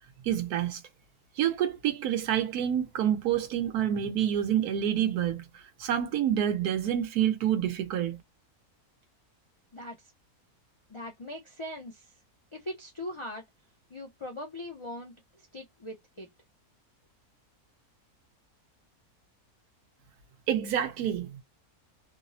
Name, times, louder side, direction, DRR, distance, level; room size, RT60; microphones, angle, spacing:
voice 1, 0.2-0.8 1.4-8.2 20.5-21.4, right 10 dB, 85° right, 1.2 m, -28 dB
voice 2, 10.9-12.1 12.5-13.4 13.9-16.3, left 1 dB, 55° left, 0.3 m, -40 dB
3.2 x 2.0 x 2.5 m
omnidirectional pair, 1.6 m